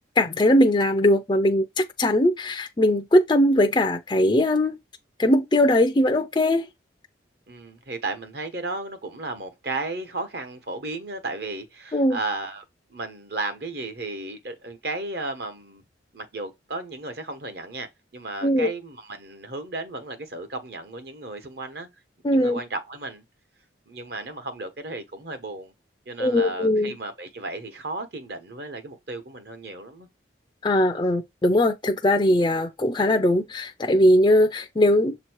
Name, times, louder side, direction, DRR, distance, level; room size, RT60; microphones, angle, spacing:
voice 1, 0.2-4.8 5.2-6.7 11.9-12.2 18.4-18.7 22.2-22.6 26.2-26.9 30.6-35.2, left 1 dB, 25° left, 0.4 m, -20 dB
voice 2, 7.5-12.6 12.9-15.8 16.1-21.9 22.3-23.2 23.9-25.7 26.1-30.1, right 2 dB, 55° right, 1.1 m, -34 dB
7.1 x 3.0 x 4.5 m
head